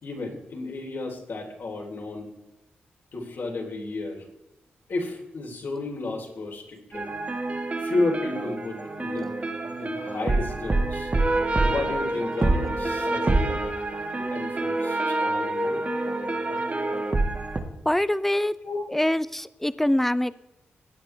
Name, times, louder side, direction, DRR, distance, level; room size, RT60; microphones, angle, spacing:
voice 1, 0.0-2.3 3.1-4.2 4.9-7.1 7.8-9.3 9.8-11.1 11.6-13.6 14.1-15.9 18.6-18.8, left 3 dB, 65° left, 0 dB, 3.5 m, -32 dB
sound 1, 6.9-17.6, right 2 dB, 35° right, 1.8 m, -26 dB
voice 2, 17.9-18.5 18.9-20.3, left 1 dB, 5° left, 16 dB, 0.5 m, -24 dB
17.0 x 9.2 x 3.4 m, 0.95 s
cardioid pair, 65°, 4 cm